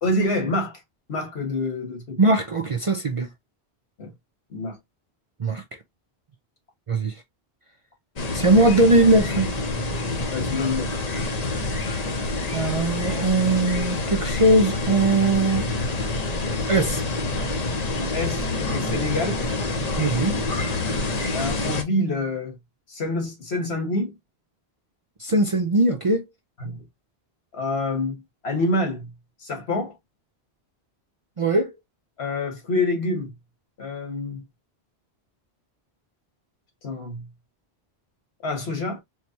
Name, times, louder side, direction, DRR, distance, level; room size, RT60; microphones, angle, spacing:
voice 1, 0.0-0.8 1.1-2.2 4.0-4.1 4.5-4.8 10.3-10.9 18.0-19.4 21.3-22.6 22.9-24.2 26.6-26.8 27.5-29.1 29.4-30.0 32.2-33.3 33.8-34.4 36.8-37.3 38.4-39.0, left 2 dB, 75° left, 1.6 m, -27 dB
voice 2, 2.2-3.3 5.4-5.6 6.9-7.1 8.3-9.5 12.5-15.7 16.7-17.0 20.0-20.3 25.2-26.2 31.4-31.7, right 2 dB, 45° right, 0.5 m, -20 dB
sound 1, 8.2-21.8, left 2 dB, 40° left, 0.8 m, -27 dB
4.5 x 2.3 x 2.7 m
omnidirectional pair, 1.1 m